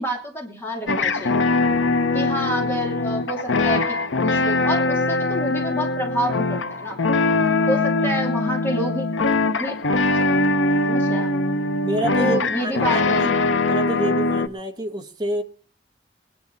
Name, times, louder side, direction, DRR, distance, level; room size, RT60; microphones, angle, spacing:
voice 1, 0.0-1.4 2.1-7.0 7.7-9.1 9.6-9.8 10.9-11.3 12.2-13.3, equal, 10° left, 2.8 m, -28 dB
sound 1, 0.9-14.5, left 3 dB, 90° left, 0.9 m, -22 dB
voice 2, 11.8-13.3 13.7-15.4, right 1 dB, 20° right, 1.4 m, -28 dB
21.5 x 10.5 x 4.0 m
head